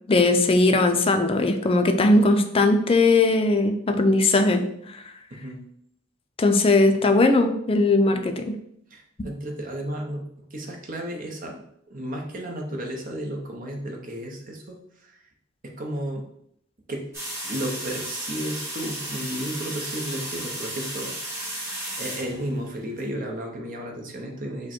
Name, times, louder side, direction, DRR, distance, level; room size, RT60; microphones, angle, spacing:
voice 1, 0.1-4.7 6.4-8.5, left 2 dB, 30° left, 6 dB, 0.4 m, -19 dB
voice 2, 8.9-10.2 10.5-11.6 11.9-15.1 15.6-16.2 16.9-17.1 17.4-21.1 21.4-21.5 22.0-24.7, right 1 dB, 45° right, 1 dB, 0.9 m, -33 dB
sound 1, 17.1-23.0, right 1 dB, 15° right, 1.7 m, -34 dB
5.1 x 2.2 x 4.3 m, 0.71 s
head